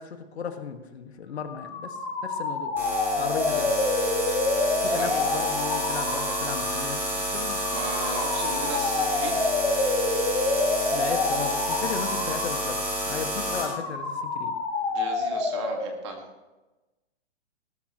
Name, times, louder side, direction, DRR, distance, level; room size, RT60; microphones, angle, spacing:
voice 1, 0.0-2.7 3.2-3.7 4.8-7.6 10.9-12.8 13.1-14.6, left 6 dB, 70° left, 6 dB, 1.8 m, -35 dB
sound 1, 1.4-16.1, left 3 dB, 10° left, 1.4 m, -28 dB
sound 2, 2.8-13.6, right 1 dB, 5° right, 3.0 m, -30 dB
voice 2, 5.0-5.3 7.7-9.3 14.9-16.3, right 3 dB, 25° right, 3 dB, 1.9 m, -36 dB
19.5 x 12.5 x 3.1 m, 1.1 s
hypercardioid pair, 175°, 34 cm